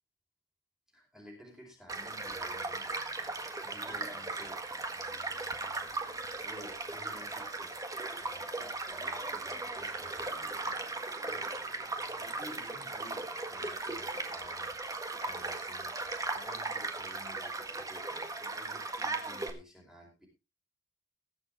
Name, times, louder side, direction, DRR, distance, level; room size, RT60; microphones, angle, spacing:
voice 1, 0.9-4.8 6.4-7.8 8.2-10.8 11.2-11.5 12.1-15.9 16.3-20.3, equal, 5° right, -1 dB, 5.1 m, -53 dB
Child speech kid speaking / Stream / Car passing by, 1.9-19.5, right 3 dB, 20° right, 1.5 m, -37 dB
20.5 x 7.2 x 3.8 m, 0.28 s
head